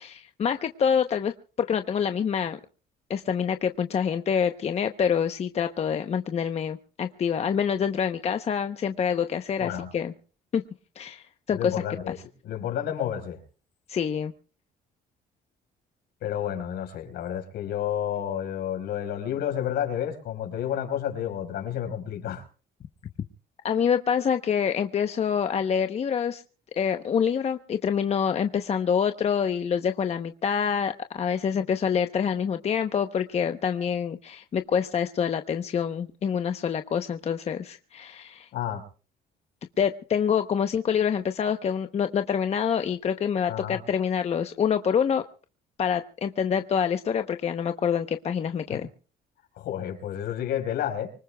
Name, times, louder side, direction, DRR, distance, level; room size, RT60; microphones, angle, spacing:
voice 1, 0.0-1.3 1.6-2.6 3.1-10.1 10.5-10.6 11.0-11.8 13.9-14.3 23.6-26.4 26.8-38.5 39.8-45.2 45.8-48.9, left 7 dB, 40° left, 0.8 m, -26 dB
voice 2, 11.5-12.1 12.4-13.4 16.2-22.4 38.5-38.8 43.5-43.8 48.7-48.8 49.6-51.1, left 10 dB, 75° left, 4.6 m, -30 dB
25.0 x 19.5 x 2.3 m
cardioid pair, 110°, 17 cm